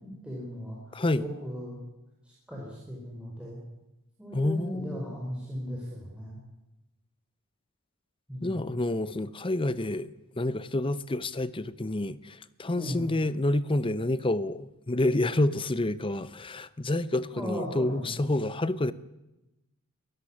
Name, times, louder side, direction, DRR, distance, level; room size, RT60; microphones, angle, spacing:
voice 1, 0.0-0.8 1.1-1.8 2.5-3.6 4.2-6.4 8.3-8.7 12.8-13.0 17.3-18.2, equal, 5° right, 4.8 m, -37 dB
voice 2, 0.9-1.3 4.3-5.1 8.4-18.9, left 1 dB, 25° left, 0.7 m, -28 dB
23.5 x 13.5 x 9.9 m
head